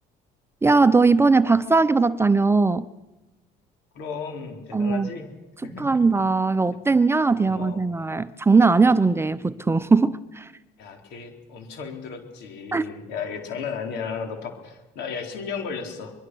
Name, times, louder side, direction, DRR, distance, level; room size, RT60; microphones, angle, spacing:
voice 1, 0.6-2.9 4.7-5.1 5.8-10.5 12.7-12.8, right 4 dB, 15° right, 0.7 m, -19 dB
voice 2, 3.9-5.3 5.6-5.9 7.4-7.8 10.8-16.1, left 5 dB, 85° left, 4.1 m, -34 dB
24.0 x 22.0 x 6.3 m
cardioid pair, 110°, 17 cm